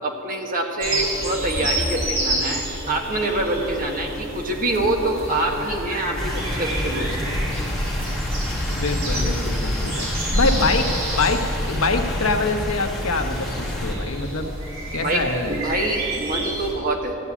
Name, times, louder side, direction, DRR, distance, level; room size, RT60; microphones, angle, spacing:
voice 1, 0.0-7.2 15.0-15.2 15.5-17.2, right 2 dB, 40° right, 1 dB, 1.5 m, -25 dB
sound 1, 0.8-16.7, right 1 dB, 65° right, 4.2 m, -30 dB
sound 2, 6.2-14.0, left 1 dB, ahead, 1.8 m, -26 dB
voice 2, 8.8-10.1 10.3-14.5 14.9-15.6, left 3 dB, 85° left, 5 dB, 1.1 m, -24 dB
14.0 x 8.2 x 8.4 m, 2.7 s
head